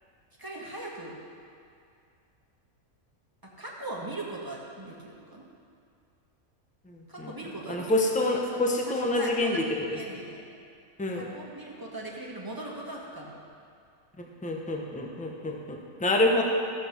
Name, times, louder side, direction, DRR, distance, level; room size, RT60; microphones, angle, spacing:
voice 1, 0.4-1.2 3.4-5.5 7.1-7.9 8.5-8.6 8.9-9.6 9.9-10.4 11.1-13.4, right 2 dB, 15° right, -3 dB, 1.6 m, -39 dB
voice 2, 6.9-7.3 7.7-9.6 11.0-11.3 14.2-16.4, left 2 dB, 5° left, 1 dB, 0.8 m, -27 dB
14.0 x 7.2 x 5.9 m, 2.3 s
omnidirectional pair, 1.4 m